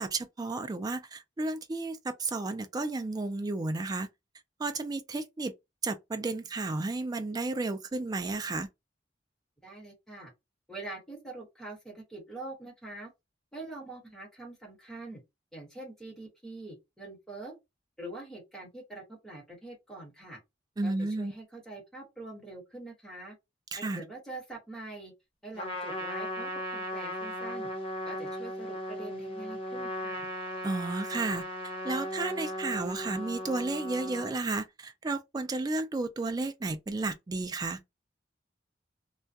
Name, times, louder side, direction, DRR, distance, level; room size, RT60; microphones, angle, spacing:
voice 1, 0.0-4.1 4.6-5.5 5.8-8.7 20.8-21.3 23.7-24.0 30.6-31.4 31.8-37.8, right 3 dB, 20° right, 0.3 m, -32 dB
voice 2, 9.6-10.3 10.7-13.1 13.5-15.2 15.5-17.6 18.0-20.4 20.8-23.4 23.8-25.1 25.4-27.7 28.0-30.3, right 2 dB, 5° left, 1.1 m, -44 dB
Trumpet, 25.5-34.3, left 1 dB, 30° left, 0.6 m, -37 dB
2.2 x 2.1 x 2.6 m
head